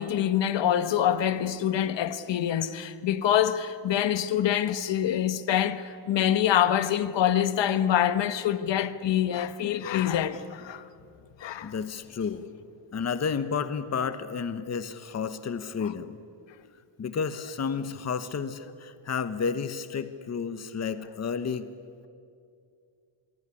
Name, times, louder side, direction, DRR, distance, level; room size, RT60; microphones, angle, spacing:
voice 1, 0.0-10.8 11.4-11.7 15.8-15.9, left 10 dB, 60° left, 1.4 m, -25 dB
voice 2, 11.6-12.4 12.9-16.2 17.0-21.7, left 6 dB, 30° left, 1.1 m, -31 dB
25.5 x 23.5 x 9.9 m
cardioid pair, 160°, 49 cm